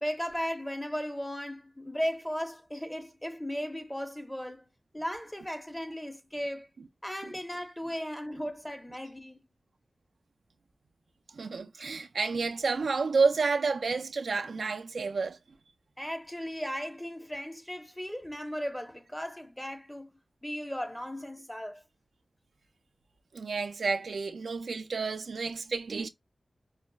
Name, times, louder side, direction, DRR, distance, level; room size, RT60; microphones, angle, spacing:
voice 1, 0.0-4.7 4.9-6.7 7.0-9.5 16.0-20.1 20.4-21.8, equal, 10° left, 0.8 m, -36 dB
voice 2, 11.4-15.4 23.3-26.1, right 4 dB, 80° right, 0.4 m, -30 dB
5.2 x 2.0 x 2.3 m
cardioid pair, 55°, 0 cm